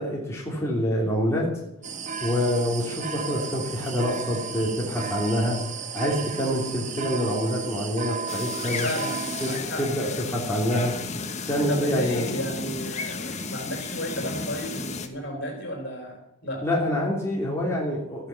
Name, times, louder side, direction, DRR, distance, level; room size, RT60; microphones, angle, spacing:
voice 1, 0.0-1.5 2.2-5.6 5.9-8.9 9.4-9.5 9.8-10.9 11.5-12.3 16.6-18.3, equal, 15° left, -3 dB, 2.8 m, -26 dB
sound 1, 1.8-9.6, right 6 dB, 35° right, 1.1 m, -34 dB
sound 2, 8.3-15.1, left 4 dB, 35° left, 1.2 m, -33 dB
voice 2, 8.8-9.8 11.7-16.6, equal, 55° left, 3 dB, 4.1 m, -33 dB
13.5 x 10.5 x 7.0 m, 0.85 s
head